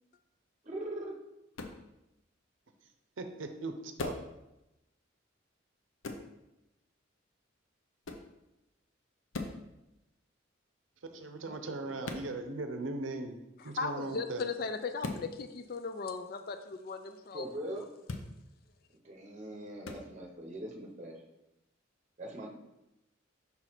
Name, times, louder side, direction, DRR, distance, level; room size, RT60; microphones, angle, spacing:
voice 1, 0.6-1.1 11.1-12.1 17.3-17.9 19.0-21.2 22.2-22.5, right 1 dB, 35° right, 1 dB, 0.9 m, -42 dB
sound 1, 1.5-1.8 4.0-4.3 6.0-6.3 8.0-8.3 9.3-9.6 12.0-12.3 15.0-15.3 18.0-18.3 19.8-20.0, left 3 dB, 85° left, 0.6 m, -39 dB
voice 2, 3.2-4.2 11.1-13.4 13.6-14.4, right 2 dB, 80° right, 6 dB, 0.6 m, -38 dB
voice 3, 13.6-17.5 17.8-17.9, left 4 dB, 50° left, 9 dB, 0.4 m, -37 dB
5.6 x 4.0 x 4.4 m, 0.92 s
head